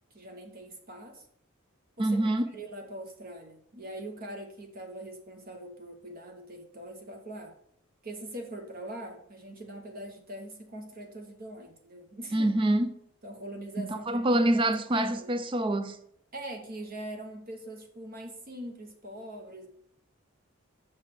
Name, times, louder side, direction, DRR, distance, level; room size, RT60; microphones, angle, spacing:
voice 1, 0.1-1.3 2.0-7.5 8.0-12.5 13.2-14.6 14.9-15.3 16.3-19.7, right 1 dB, 45° right, 1.0 m, -42 dB
voice 2, 2.0-2.5 12.3-12.9 13.8-16.0, right 1 dB, 25° right, 0.4 m, -26 dB
6.5 x 4.0 x 5.8 m
head